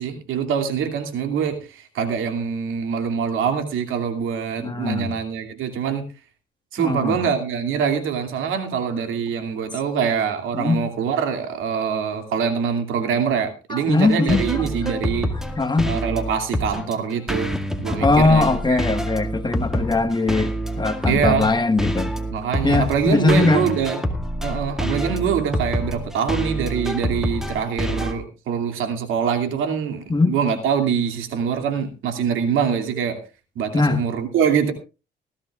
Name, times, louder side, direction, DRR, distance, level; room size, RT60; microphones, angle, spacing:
voice 1, 0.0-6.1 6.7-15.3 15.9-18.8 21.1-21.5 22.3-24.0 24.4-33.2 33.5-34.7, right 7 dB, 85° right, 2.6 m, -24 dB
voice 2, 4.6-5.1 6.8-7.2 10.5-10.8 13.7-14.7 15.6-15.9 18.0-22.1 22.6-23.7 30.1-30.4 33.7-34.0, left 3 dB, 20° left, 1.5 m, -20 dB
sound 1, 14.1-28.1, equal, ahead, 2.1 m, -27 dB
19.5 x 15.0 x 2.4 m
cardioid pair, 90°, 20 cm